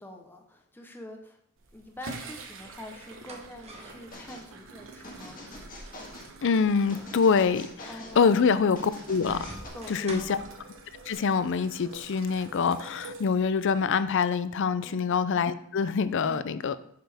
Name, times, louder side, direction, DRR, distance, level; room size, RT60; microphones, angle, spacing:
voice 1, 0.0-1.4 1.7-5.5 7.9-8.3 9.7-10.3 14.8-15.1 16.2-16.4, left 1 dB, 10° left, 2 dB, 0.8 m, -45 dB
sound 1, 1.6-13.9, right 3 dB, 65° right, 1.1 m, -47 dB
sound 2, 3.0-11.1, right 1 dB, 30° right, 1.1 m, -46 dB
sound 3, 4.1-4.5 5.0-6.3 6.9-8.2 8.8-9.7, left 1 dB, 40° left, 1.8 m, -45 dB
voice 2, 6.4-7.9 8.2-9.5 9.9-10.4 11.1-16.8, left 5 dB, 60° left, 14 dB, 0.4 m, -25 dB
7.8 x 6.7 x 3.5 m, 0.70 s
head